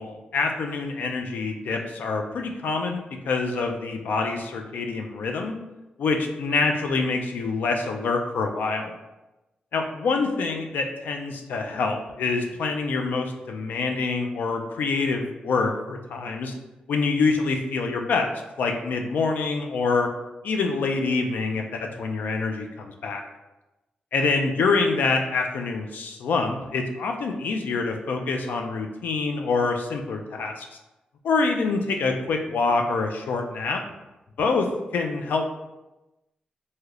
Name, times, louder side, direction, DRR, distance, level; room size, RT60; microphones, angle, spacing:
voice 1, 0.0-5.6 6.0-8.9 9.7-16.5 16.9-18.3 18.6-20.1 20.4-23.2 24.1-30.7 31.2-33.8 34.4-35.4, left 4 dB, 80° left, 3 dB, 0.4 m, -26 dB
3.2 x 2.7 x 2.4 m, 1.0 s
wide cardioid pair, 170°, 3 cm